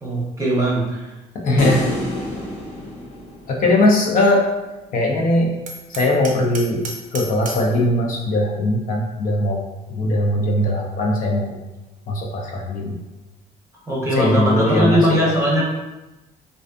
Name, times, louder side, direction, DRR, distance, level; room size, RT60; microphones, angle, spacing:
voice 1, 0.0-1.1 13.9-15.6, equal, 15° right, -5 dB, 0.7 m, -19 dB
voice 2, 1.3-1.9 3.5-4.5 4.9-5.6 5.9-6.9 7.1-9.6 10.0-11.6 12.1-13.0 14.1-15.3, left 1 dB, 55° left, -1 dB, 0.5 m, -19 dB
sound 1, 1.6-4.0, left 1 dB, 70° left, 1.1 m, -27 dB
Hammer, 5.7-7.7, right 2 dB, 50° right, 0.5 m, -34 dB
2.4 x 2.3 x 2.3 m, 1.0 s
cardioid pair, 110°, 17 cm